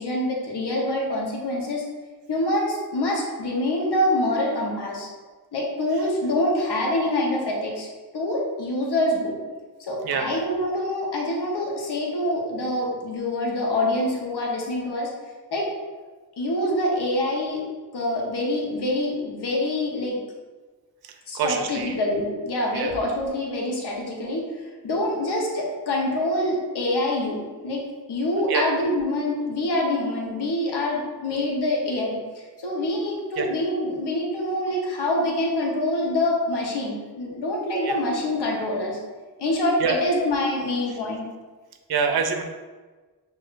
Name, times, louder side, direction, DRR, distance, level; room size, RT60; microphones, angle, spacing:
voice 1, 0.0-1.8 2.3-5.1 5.5-7.9 8.1-9.4 9.8-15.1 15.5-15.6 16.4-17.6 17.9-20.2 21.3-24.4 24.8-27.4 27.6-39.0 39.4-41.3, left 1 dB, 70° left, -2 dB, 1.0 m, -25 dB
voice 2, 21.0-21.9 22.7-22.9 28.5-28.7 33.4-33.5 37.8-37.9 39.8-40.0 41.9-42.4, right 6 dB, 60° right, 5 dB, 0.5 m, -25 dB
6.0 x 2.6 x 2.4 m, 1.3 s
cardioid pair, 75°, 41 cm